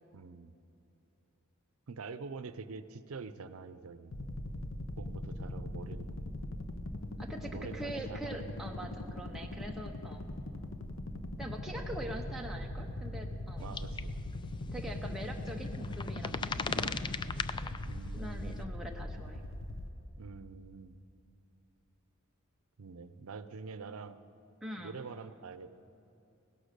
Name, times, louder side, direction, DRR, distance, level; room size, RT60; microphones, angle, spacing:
voice 1, 0.1-0.5 1.9-4.1 5.0-6.1 7.5-8.5 10.8-11.0 13.6-14.1 16.7-17.0 17.8-18.8 20.2-21.0 22.8-24.2 24.8-25.7, right 4 dB, 85° right, 13 dB, 0.6 m, -46 dB
sound 1, 4.1-19.9, left 1 dB, 65° left, 0.9 m, -40 dB
voice 2, 7.2-10.3 11.4-13.7 14.7-17.0 17.5-17.8 18.1-19.4 24.6-25.0, right 1 dB, ahead, 0 dB, 0.7 m, -43 dB
sound 2, 13.7-14.0 14.3-14.4 15.5-17.9 18.5-18.6, left 5 dB, 20° left, 0.3 m, -37 dB
17.0 x 11.5 x 6.6 m, 2.8 s
head